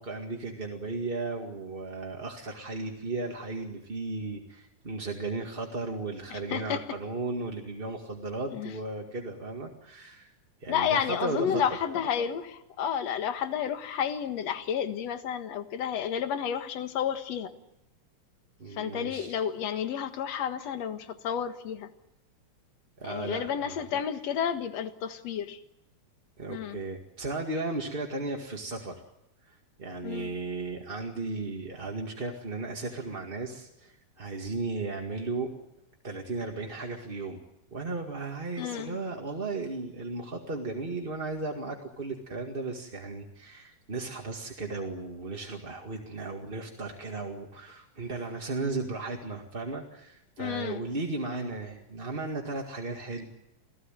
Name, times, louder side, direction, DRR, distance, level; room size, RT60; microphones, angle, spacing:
voice 1, 0.0-10.3 10.6-11.6 18.6-19.4 23.0-23.7 26.4-29.0 29.4-35.5 36.0-37.4 37.7-53.2, right 3 dB, 20° right, 1 dB, 1.8 m, -35 dB
voice 2, 6.3-6.8 8.5-8.7 10.7-17.5 18.7-21.9 23.0-25.6 26.5-26.8 30.0-30.3 38.6-39.0 50.4-50.8, left 8 dB, 60° left, 9 dB, 2.6 m, -31 dB
28.5 x 18.0 x 9.1 m, 0.88 s
omnidirectional pair, 3.5 m